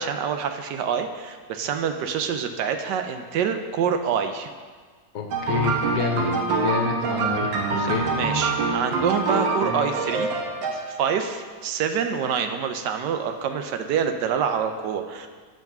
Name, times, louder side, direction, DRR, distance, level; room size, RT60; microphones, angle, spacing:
voice 1, 0.0-4.5 7.8-10.3 10.7-15.3, right 7 dB, 75° right, 7 dB, 1.2 m, -26 dB
voice 2, 5.1-7.5 7.8-8.1, left 6 dB, 65° left, 3 dB, 1.2 m, -28 dB
sound 1, 5.3-11.1, right 3 dB, 90° right, 1.7 m, -25 dB
7.9 x 4.8 x 5.8 m, 1.5 s
omnidirectional pair, 2.0 m